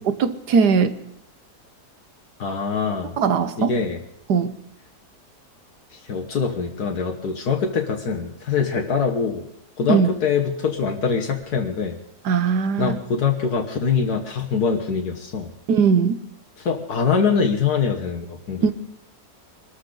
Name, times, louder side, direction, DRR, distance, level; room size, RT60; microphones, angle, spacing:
voice 1, 0.2-1.0 3.2-3.7 4.3-4.5 9.9-10.1 12.2-13.0 15.7-16.2 18.6-18.7, right 6 dB, 90° right, 11 dB, 1.6 m, -19 dB
voice 2, 2.4-3.2 3.6-4.0 5.9-9.4 9.8-12.0 12.8-15.5 16.6-18.7, left 5 dB, 75° left, 1 dB, 1.8 m, -23 dB
23.5 x 13.0 x 3.9 m, 0.77 s
omnidirectional pair, 1.7 m